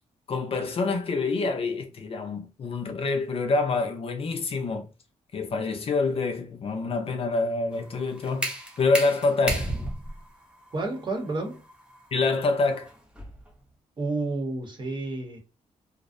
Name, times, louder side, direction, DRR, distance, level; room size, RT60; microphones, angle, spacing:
voice 1, 0.3-4.9 5.3-9.7 12.1-12.9, left 3 dB, 45° left, 0.5 m, -26 dB
sound 1, 7.7-13.5, right 1 dB, 5° right, 0.5 m, -34 dB
voice 2, 10.7-11.7 14.0-15.4, right 2 dB, 35° right, 0.8 m, -30 dB
2.5 x 2.0 x 2.5 m
cardioid pair, 120°, 14 cm